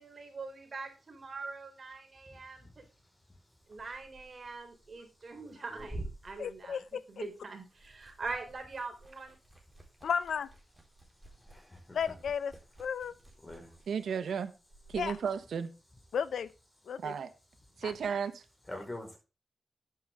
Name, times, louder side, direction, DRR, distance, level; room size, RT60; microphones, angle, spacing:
voice 1, 0.0-2.8 3.7-6.8 7.1-9.4, right 3 dB, 50° right, 3.6 m, -43 dB
Liquid, 3.6-7.3 7.6-15.2, right 2 dB, 10° right, 3.9 m, -50 dB
voice 2, 6.4-7.0 10.0-10.5 11.9-12.5 12.8-13.1 15.0-15.2 16.1-16.5 16.9-17.1 17.8-17.9, left 7 dB, 85° left, 0.7 m, -33 dB
voice 3, 11.4-12.0 13.4-13.7 18.7-19.2, left 1 dB, 20° left, 4.8 m, -44 dB
voice 4, 13.9-14.5 14.9-15.7 17.0-17.3 17.8-18.4, right 7 dB, 85° right, 1.1 m, -34 dB
10.5 x 9.0 x 3.6 m
cardioid pair, 75°, 0 cm